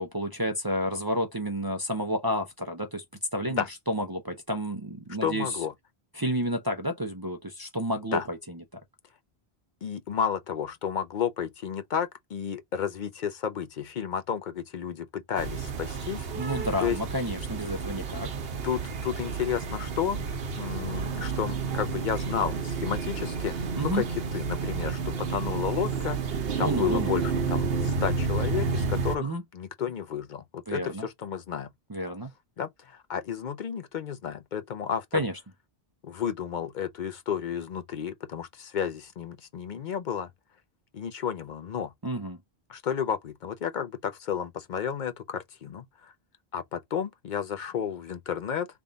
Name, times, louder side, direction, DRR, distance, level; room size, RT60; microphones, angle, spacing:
voice 1, 0.0-3.0 3.3-5.6 6.1-8.6 16.3-18.3 23.7-24.0 26.6-27.1 29.2-29.4 30.7-31.1 31.9-32.3 35.1-35.3 42.0-42.4, equal, 25° right, 0.5 m, -30 dB
voice 2, 5.2-5.7 8.1-8.3 9.8-17.0 18.6-20.2 20.6-24.1 24.3-31.7 32.6-35.0 36.0-40.3 40.9-41.9 42.7-46.1 46.5-48.7, left 8 dB, 55° left, 0.6 m, -32 dB
sound 1, 15.4-29.2, right 5 dB, 70° right, 1.0 m, -31 dB
3.5 x 2.4 x 3.9 m
omnidirectional pair, 1.1 m